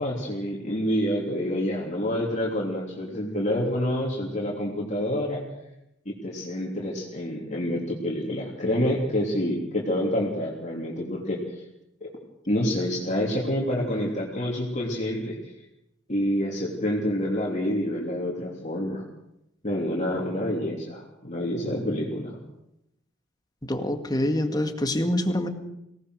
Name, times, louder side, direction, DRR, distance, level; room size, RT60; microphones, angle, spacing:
voice 1, 0.0-5.4 6.1-11.4 12.0-12.1 12.5-15.4 16.1-19.0 19.6-22.4, equal, 40° left, -3 dB, 3.3 m, -27 dB
voice 2, 23.7-25.5, left 1 dB, 20° left, 6 dB, 1.9 m, -25 dB
24.5 x 18.5 x 6.4 m, 0.83 s
head